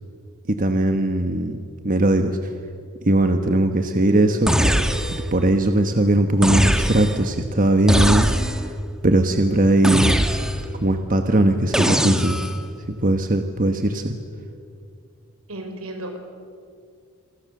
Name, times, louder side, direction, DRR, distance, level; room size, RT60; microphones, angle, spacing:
voice 1, 0.6-1.6 1.8-2.4 3.0-4.7 5.3-8.3 9.0-10.2 10.8-12.4 12.9-14.1, right 1 dB, 40° right, 6 dB, 1.2 m, -19 dB
sound 1, 4.5-5.4 6.4-7.3 7.9-8.7 9.8-10.8 11.7-12.6, equal, 5° right, 1.1 m, -21 dB
voice 2, 15.5-16.2, right 1 dB, 80° right, 5 dB, 4.7 m, -34 dB
28.0 x 24.0 x 6.7 m, 2.3 s
head